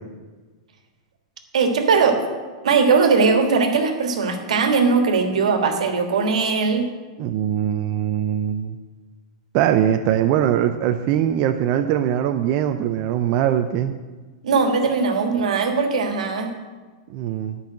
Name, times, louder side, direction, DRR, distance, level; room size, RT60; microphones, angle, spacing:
voice 1, 1.5-2.2 2.6-6.9 14.4-16.5, right 5 dB, 90° right, 5 dB, 1.6 m, -19 dB
voice 2, 7.2-8.8 9.5-13.9 17.1-17.6, right 10 dB, 45° right, 6 dB, 0.5 m, -21 dB
9.2 x 5.5 x 7.5 m, 1.3 s
hypercardioid pair, 135°, 3 cm